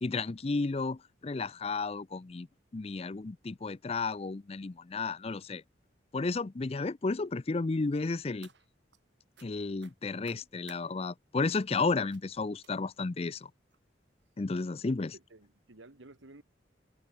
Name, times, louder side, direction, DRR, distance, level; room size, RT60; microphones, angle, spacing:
voice 1, 0.0-2.5 2.7-5.6 6.1-8.5 9.4-13.5 14.4-15.1, left 3 dB, 30° left, 0.5 m, -32 dB
sound 1, 8.0-9.0 9.4-9.5 9.8-10.8 11.5-11.8 12.1-12.3 12.6-13.0 13.7-13.8 14.2-14.4 14.7-14.8, right 7 dB, 70° right, 2.6 m, -58 dB
voice 2, 15.1-16.4, right 2 dB, 90° right, 1.8 m, -54 dB
head